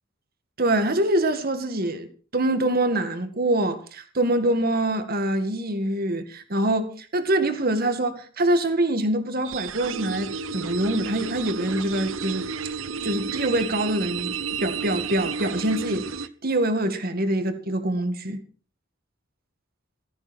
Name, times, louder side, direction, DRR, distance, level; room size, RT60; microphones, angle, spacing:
voice 1, 0.6-2.1 2.3-12.5 13.0-16.1 16.4-18.4, right 1 dB, 50° right, 2.1 m, -25 dB
sound 1, 9.4-16.3, right 5 dB, 75° right, 0.9 m, -32 dB
15.0 x 14.5 x 4.4 m
head